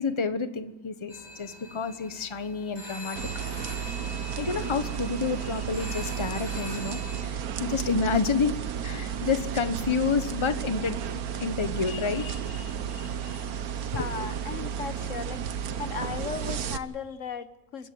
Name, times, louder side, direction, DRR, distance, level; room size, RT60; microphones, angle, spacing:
voice 1, 0.0-3.2 4.3-8.6 8.8-13.4, left 4 dB, 20° left, 1.0 m, -29 dB
sound 1, 1.1-7.2, left 1 dB, 15° right, 7.1 m, -42 dB
sound 2, 3.2-16.8, right 8 dB, 80° right, 1.5 m, -33 dB
voice 2, 13.9-15.4 15.8-17.9, left 6 dB, 60° left, 1.3 m, -36 dB
27.5 x 15.0 x 7.8 m
omnidirectional pair, 1.5 m